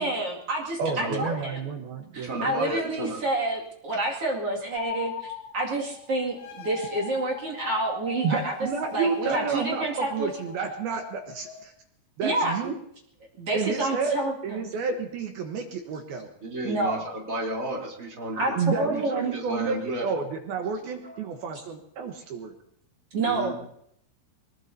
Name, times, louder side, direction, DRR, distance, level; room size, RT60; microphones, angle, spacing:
voice 1, 0.0-1.6 2.1-8.5 8.9-10.3 12.2-12.6 13.4-14.7 16.6-17.1 18.3-19.3 21.0-21.2 23.1-23.5, right 2 dB, 40° right, -2 dB, 2.4 m, -29 dB
voice 2, 0.8-2.8 8.2-11.7 12.2-12.7 13.5-14.2 14.4-16.3 18.6-22.5, right 5 dB, 70° right, 4 dB, 2.5 m, -30 dB
voice 3, 2.2-3.2 16.4-18.9 19.2-20.0 23.3-23.5, right 1 dB, 20° right, -2 dB, 3.1 m, -32 dB
sound 1, 4.7-11.6, left 6 dB, 65° left, 1.9 m, -39 dB
24.0 x 20.5 x 2.8 m, 0.71 s
omnidirectional pair, 5.5 m